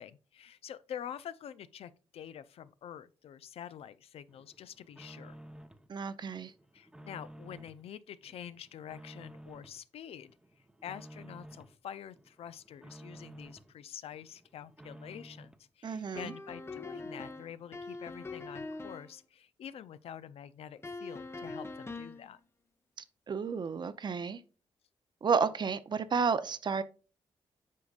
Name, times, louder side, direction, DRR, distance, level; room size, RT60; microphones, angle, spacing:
voice 1, 0.0-5.4 6.7-10.3 10.8-22.4, left 9 dB, 70° left, 0.5 m, -46 dB
sound 1, 4.3-5.9 6.3-7.8 8.2-9.8 10.2-11.8 12.1-13.7 14.1-15.7 16.1-16.2 16.5-16.6 16.7-17.6 17.9-18.0, right 1 dB, 10° right, 0.7 m, -53 dB
voice 2, 5.9-6.5 15.8-16.3 23.3-24.4 25.2-26.8, right 5 dB, 45° right, 0.6 m, -31 dB
sound 2, 16.2-19.2 20.8-22.3, left 3 dB, 25° left, 0.7 m, -43 dB
8.3 x 5.1 x 2.4 m
cardioid pair, 75°, 10 cm